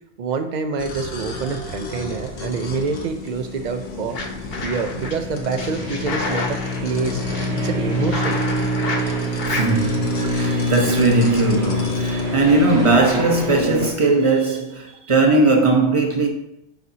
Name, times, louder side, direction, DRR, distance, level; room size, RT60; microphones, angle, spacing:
voice 1, 0.2-4.2 4.6-7.2 7.6-8.4, right 5 dB, 90° right, 0.4 m, -26 dB
sound 1, 0.8-13.2, left 3 dB, 70° left, 1.4 m, -36 dB
sound 2, 2.3-13.9, left 1 dB, 50° right, 1.9 m, -26 dB
sound 3, 3.8-5.1 5.6-9.7, left 3 dB, 50° left, 1.0 m, -30 dB
voice 2, 9.5-16.3, right 2 dB, 25° right, 0.9 m, -18 dB
10.0 x 4.0 x 2.8 m
omnidirectional pair, 1.4 m